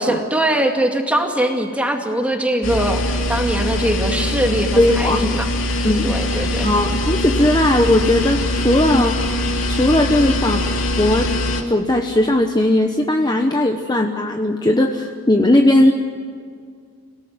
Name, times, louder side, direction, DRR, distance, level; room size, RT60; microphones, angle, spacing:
voice 1, 0.0-5.5 6.0-6.7, right 1 dB, 5° right, 3 dB, 2.3 m, -21 dB
sound 1, 2.6-11.6, left 1 dB, 65° left, 3.0 m, -22 dB
voice 2, 4.8-5.3 5.8-9.2 9.7-10.6 11.0-11.3 11.7-15.9, left 1 dB, 20° left, 3 dB, 1.1 m, -17 dB
28.5 x 18.0 x 9.5 m, 2.1 s
head